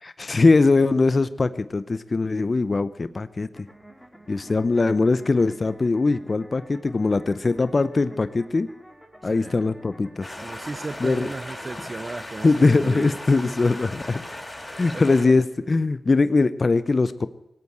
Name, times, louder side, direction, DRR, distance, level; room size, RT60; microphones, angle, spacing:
voice 1, 0.0-3.7 4.3-8.7 9.2-10.3 11.0-11.3 12.4-14.2 14.8-17.3, left 3 dB, 45° left, 14 dB, 0.7 m, -21 dB
sound 1, 3.5-11.5, right 1 dB, ahead, 2.7 m, -49 dB
voice 2, 9.2-9.6 10.4-13.1 14.9-15.2, right 3 dB, 45° right, 12 dB, 0.6 m, -35 dB
sound 2, 10.2-15.3, left 1 dB, 15° left, 5.3 m, -37 dB
18.5 x 8.5 x 7.8 m, 0.95 s
cardioid pair, 50°, 0 cm